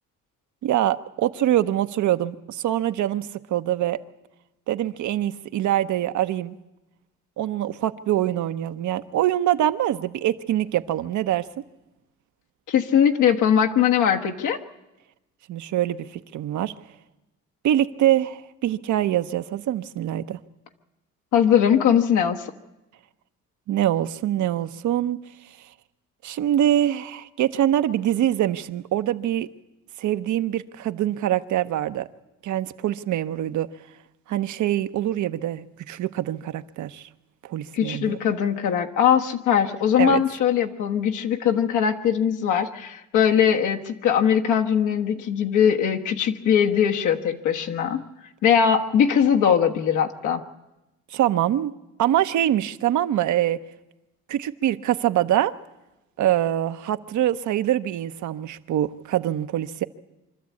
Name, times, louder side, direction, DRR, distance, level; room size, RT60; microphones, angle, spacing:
voice 1, 0.6-4.0 4.7-6.6 7.4-11.5 15.5-16.7 17.6-20.4 23.7-25.7 26.2-29.5 30.0-32.1 32.4-33.7 34.3-37.1 37.4-38.2 40.0-40.2 51.1-51.7 52.0-53.6 54.3-55.5 56.2-59.8, right 12 dB, 75° right, 11 dB, 0.8 m, -24 dB
voice 2, 12.7-14.6 21.3-22.5 37.7-48.0 48.4-50.4, left 8 dB, 80° left, 3 dB, 1.5 m, -21 dB
25.0 x 13.0 x 8.5 m, 0.99 s
cardioid pair, 90°, 30 cm